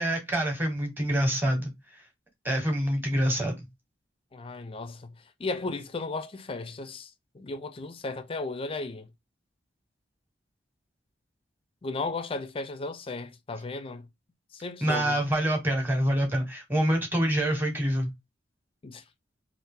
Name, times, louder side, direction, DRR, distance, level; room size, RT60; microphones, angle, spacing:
voice 1, 0.0-1.7 2.4-3.7 14.8-18.1, right 1 dB, 10° right, 1.0 m, -26 dB
voice 2, 4.3-5.1 5.4-9.1 11.8-14.1 14.5-15.2 18.8-19.0, left 3 dB, 30° left, 0.4 m, -35 dB
2.7 x 2.4 x 3.6 m
head